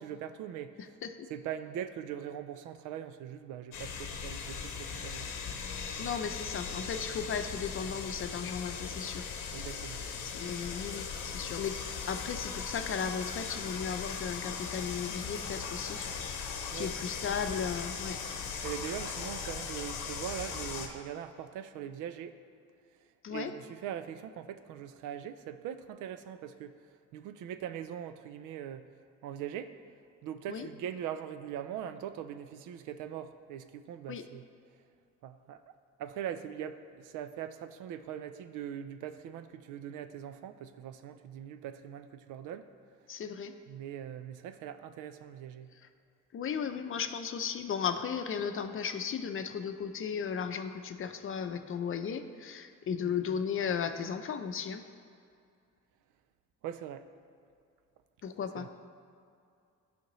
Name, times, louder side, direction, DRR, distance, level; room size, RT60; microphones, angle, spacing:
voice 1, 0.0-1.0 1.3-5.3 9.5-10.0 16.7-16.9 18.6-22.4 23.3-26.8 27.1-28.9 29.2-29.7 30.2-34.4 35.2-42.7 43.7-45.7 56.6-57.0 58.6-58.7, right 9 dB, 90° right, 10 dB, 0.5 m, -41 dB
sound 1, 3.7-20.9, left 6 dB, 85° left, 0.8 m, -39 dB
voice 2, 6.0-9.3 10.3-11.8 12.1-16.1 16.4-18.2 23.2-23.5 30.5-30.7 34.1-34.2 43.1-43.5 46.3-54.8 58.2-58.7, left 7 dB, 45° left, 8 dB, 0.6 m, -35 dB
11.5 x 5.1 x 3.1 m, 2.4 s
cardioid pair, 90°, 30 cm